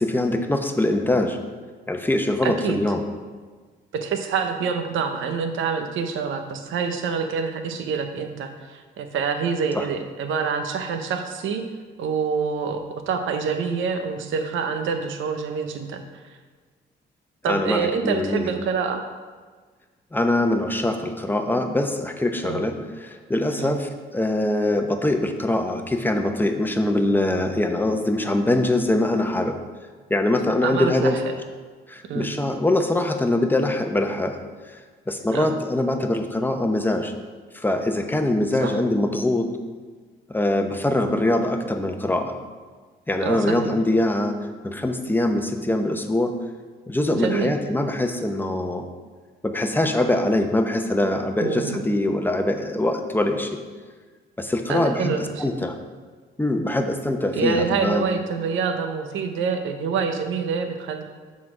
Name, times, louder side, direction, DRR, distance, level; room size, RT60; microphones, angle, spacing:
voice 1, 0.0-1.4 1.9-3.0 9.7-9.8 17.5-18.5 20.1-29.6 30.1-31.2 31.9-34.4 34.6-34.8 35.1-37.1 37.5-39.5 40.3-42.3 43.1-44.4 44.6-46.3 46.9-48.8 49.4-53.6 54.4-55.8 56.4-58.1, left 1 dB, 10° left, 5 dB, 0.8 m, -23 dB
voice 2, 2.4-2.8 3.9-11.6 12.0-16.0 17.4-19.0 22.4-22.6 23.6-23.8 30.6-31.2 32.1-32.3 35.3-35.5 38.6-38.8 43.2-43.8 47.2-47.5 51.4-51.8 54.7-55.4 57.3-61.0, right 5 dB, 80° right, 6 dB, 0.8 m, -26 dB
7.3 x 4.1 x 6.0 m, 1.5 s
cardioid pair, 90°, 20 cm